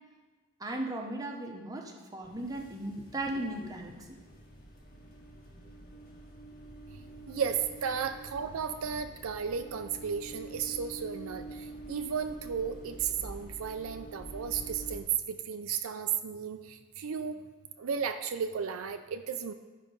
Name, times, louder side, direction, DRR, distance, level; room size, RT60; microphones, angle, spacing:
voice 1, 0.6-4.2, right 1 dB, 15° right, 1 dB, 0.8 m, -37 dB
sound 1, 2.2-15.0, right 2 dB, 45° left, 1.5 m, -47 dB
voice 2, 7.3-17.4 17.8-19.5, right 7 dB, 70° right, 8 dB, 0.4 m, -34 dB
9.7 x 5.0 x 5.3 m, 1.3 s
head